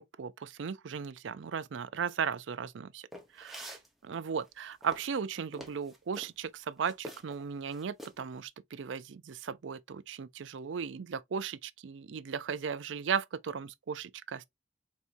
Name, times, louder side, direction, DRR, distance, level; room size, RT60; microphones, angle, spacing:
voice 1, 0.0-3.0 3.3-14.4, right 6 dB, 80° right, 0.4 m, -36 dB
sound 1, 3.1-3.9 4.5-6.3 6.9-7.4 7.7-8.3, equal, ahead, 0.9 m, -46 dB
4.7 x 4.2 x 2.6 m
head